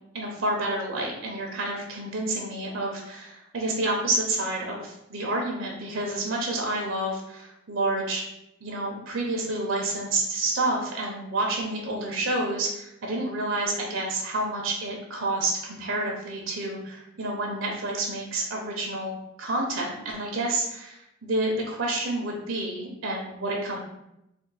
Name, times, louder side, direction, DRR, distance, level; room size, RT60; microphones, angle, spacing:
voice 1, 0.1-8.2 8.6-23.8, right 2 dB, 85° right, 0 dB, 0.8 m, -29 dB
3.5 x 2.2 x 4.0 m, 0.84 s
head